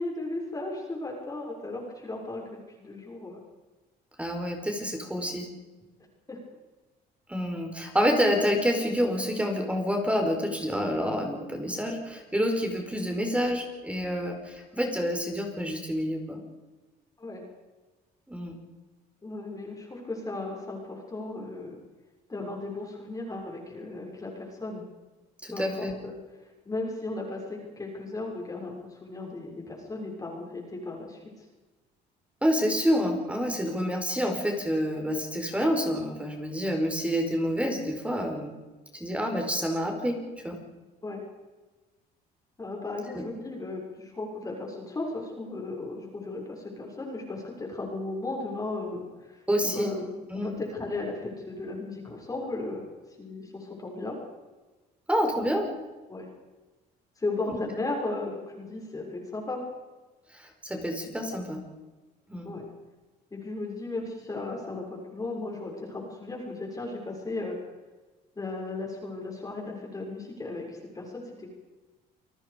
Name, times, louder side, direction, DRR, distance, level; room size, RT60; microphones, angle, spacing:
voice 1, 0.0-3.4 6.3-6.4 17.2-17.4 19.2-21.8 22.3-24.9 25.5-26.1 26.6-31.2 41.0-41.2 42.6-52.9 53.2-54.2 55.3-55.4 56.1-56.3 57.2-59.6 62.4-62.6 63.3-67.5 68.3-71.5, left 2 dB, 20° left, 0 dB, 6.7 m, -36 dB
voice 2, 4.2-5.5 7.3-16.4 18.3-18.5 25.4-25.9 32.4-38.5 39.0-40.6 43.1-43.2 49.5-49.9 50.3-50.6 55.1-55.7 60.3-61.6 62.3-62.5, equal, 5° right, 3 dB, 5.0 m, -28 dB
29.0 x 19.0 x 5.3 m, 1.2 s
cardioid pair, 110°, 17 cm